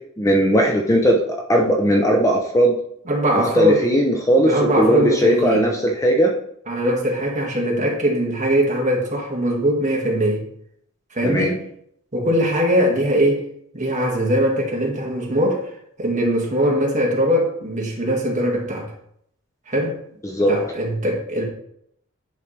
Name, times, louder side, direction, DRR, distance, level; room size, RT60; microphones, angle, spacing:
voice 1, 0.2-2.8 3.6-4.5 4.8-6.3 11.2-11.5 20.2-20.5, equal, 15° left, 1 dB, 0.8 m, -18 dB
voice 2, 3.1-3.9 4.4-5.7 6.7-10.4 11.1-11.6 12.1-13.5 13.7-15.7 16.0-18.9 19.7-20.0 20.5-21.4, equal, 35° right, -2 dB, 2.0 m, -21 dB
10.5 x 4.6 x 3.3 m, 0.69 s
head